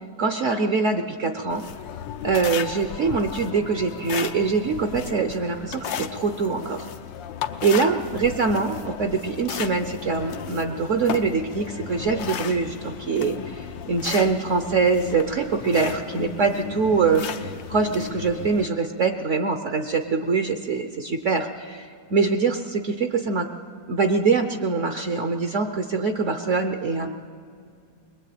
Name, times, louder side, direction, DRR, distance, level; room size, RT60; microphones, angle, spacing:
voice 1, 0.2-1.7 2.2-6.9 7.6-23.5 23.9-27.1, right 4 dB, 55° right, 7 dB, 1.0 m, -24 dB
sound 1, 1.5-18.6, left 8 dB, 85° left, 1.5 m, -35 dB
21.5 x 21.0 x 8.5 m, 2.3 s
omnidirectional pair, 2.0 m